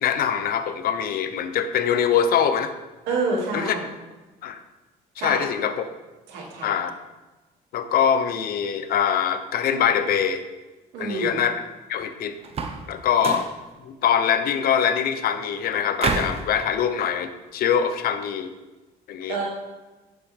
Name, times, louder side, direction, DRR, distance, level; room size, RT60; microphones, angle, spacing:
voice 1, 0.0-2.7 3.5-3.8 4.4-4.6 5.2-5.7 6.6-6.9 7.7-10.4 11.0-11.6 11.9-12.3 12.9-13.4 13.8-18.5 19.1-19.4, left 8 dB, 60° left, 10 dB, 0.7 m, -23 dB
voice 2, 3.1-3.8 5.2-5.4 6.3-6.7 10.9-11.3 19.3-19.4, right 3 dB, 90° right, -3 dB, 2.4 m, -27 dB
sound 1, 12.4-12.9 13.2-13.6 16.0-16.4, right 4 dB, 35° right, 0.9 m, -27 dB
8.0 x 7.1 x 3.5 m, 1.2 s
cardioid pair, 110°, 17 cm